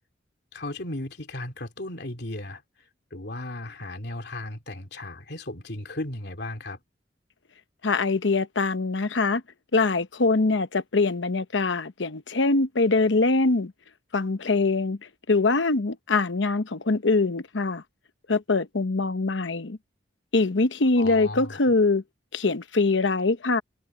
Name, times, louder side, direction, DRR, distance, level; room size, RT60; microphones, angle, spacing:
voice 1, 0.5-6.8 21.0-21.6, left 1 dB, 65° left, 3.1 m, -36 dB
voice 2, 7.8-9.4 9.7-13.7 14.1-15.0 15.3-17.8 18.3-19.8 20.3-22.0 22.3-23.6, left 3 dB, 90° left, 1.0 m, -23 dB
head